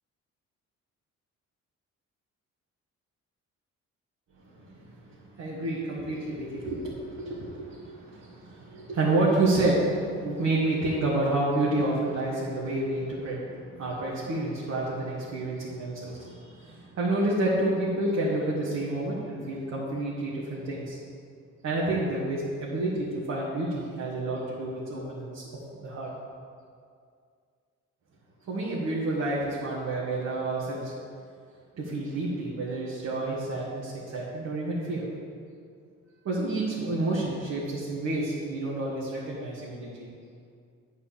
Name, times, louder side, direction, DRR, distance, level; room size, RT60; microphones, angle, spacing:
voice 1, 4.5-21.0 21.6-25.4 25.7-26.1 28.5-30.9 31.8-35.1 36.2-40.1, right 2 dB, 60° right, -6 dB, 1.9 m, -29 dB
8.5 x 4.6 x 7.3 m, 2.2 s
cardioid pair, 90°, 30 cm